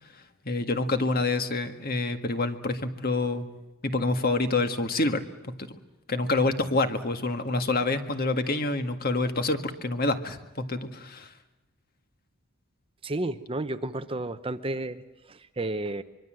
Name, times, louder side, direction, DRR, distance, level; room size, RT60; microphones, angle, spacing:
voice 1, 0.1-3.5 3.8-5.2 6.1-11.3, left 2 dB, 45° left, 8 dB, 1.9 m, -27 dB
voice 2, 13.0-16.0, right 2 dB, 25° right, 11 dB, 0.8 m, -32 dB
24.5 x 23.5 x 7.7 m, 1.0 s
head